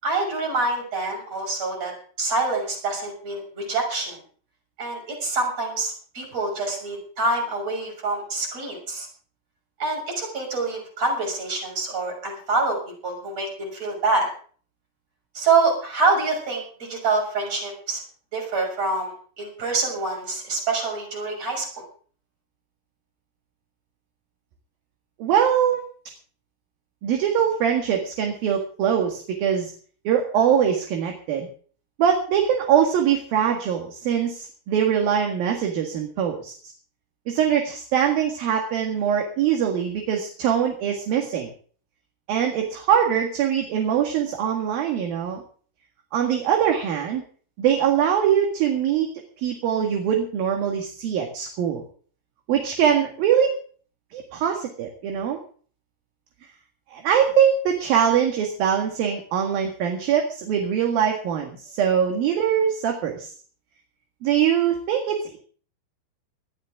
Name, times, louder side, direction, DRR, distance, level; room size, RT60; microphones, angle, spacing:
voice 1, 0.0-1.9 2.2-4.2 4.8-9.1 9.8-12.8 13.0-14.3 15.3-18.0 18.3-21.8, right 3 dB, 40° right, 0 dB, 7.4 m, -26 dB
voice 2, 25.2-25.8 27.0-29.7 30.1-31.5 32.0-36.5 37.3-41.5 42.3-45.4 46.1-47.2 47.6-49.1 49.4-51.8 52.5-53.5 54.1-55.4 56.9-63.3 64.2-65.4, right 8 dB, 70° right, 3 dB, 3.5 m, -22 dB
20.0 x 13.0 x 3.7 m, 0.43 s
omnidirectional pair, 4.5 m